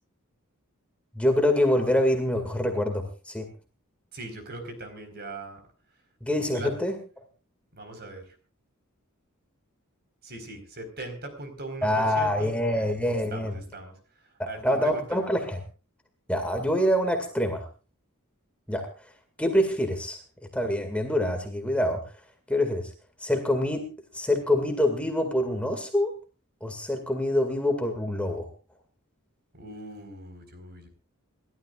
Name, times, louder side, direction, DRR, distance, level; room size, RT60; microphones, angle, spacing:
voice 1, 1.2-3.5 6.2-7.0 11.8-13.6 14.4-15.6 16.3-17.7 18.7-18.8 19.4-20.2 20.5-22.0 22.5-22.9 23.2-23.9 24.1-26.1 26.6-28.5, left 1 dB, 5° left, 4 dB, 2.1 m, -25 dB
voice 2, 4.1-5.6 6.5-6.7 7.7-8.3 10.2-13.0 13.3-13.9 14.5-15.3 29.5-30.9, right 2 dB, 50° right, 7 dB, 4.5 m, -40 dB
28.5 x 13.0 x 2.4 m, 0.34 s
head